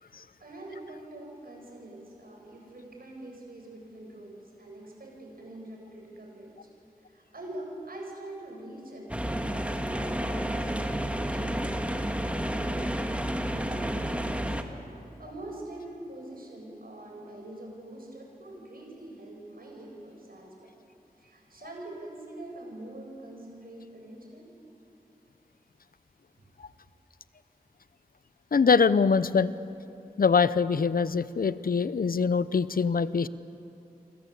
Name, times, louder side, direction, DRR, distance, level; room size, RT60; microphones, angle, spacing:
voice 1, 0.0-6.7 7.1-14.4 15.2-20.7 21.2-24.5 26.3-26.5, right 1 dB, 75° right, 0 dB, 7.3 m, -44 dB
sound 1, 9.1-14.6, equal, 10° right, 2.0 m, -30 dB
voice 2, 28.5-29.5 30.2-33.3, left 5 dB, 70° left, 15 dB, 0.7 m, -23 dB
29.0 x 24.0 x 8.5 m, 2.8 s
wide cardioid pair, 55°, 15 cm